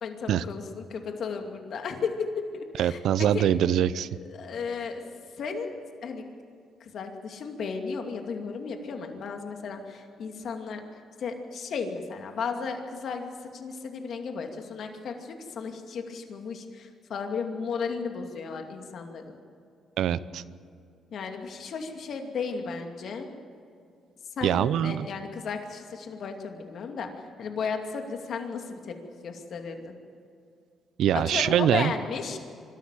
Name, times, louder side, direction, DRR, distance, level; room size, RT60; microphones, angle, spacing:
voice 1, 0.0-3.5 4.3-5.0 5.4-5.7 6.0-6.2 6.8-10.8 11.2-19.4 21.1-23.3 24.4-29.0 29.2-29.9 31.1-32.4, left 5 dB, 65° left, 4 dB, 2.5 m, -34 dB
voice 2, 2.8-4.1 20.0-20.4 24.4-25.1 31.0-31.9, right 10 dB, 75° right, 16 dB, 0.7 m, -23 dB
25.0 x 13.5 x 9.0 m, 2.4 s
cardioid pair, 90°, 0 cm